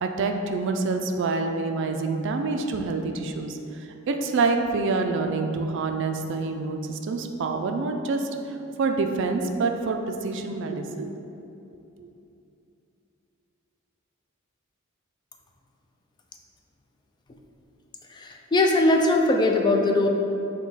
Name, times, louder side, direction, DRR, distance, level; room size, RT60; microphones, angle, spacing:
voice 1, 0.0-11.1 12.0-12.1, right 3 dB, 60° right, 5 dB, 0.3 m, -27 dB
voice 2, 18.1-20.1, left 2 dB, 20° left, 2 dB, 0.3 m, -21 dB
6.0 x 2.2 x 4.0 m, 2.8 s
head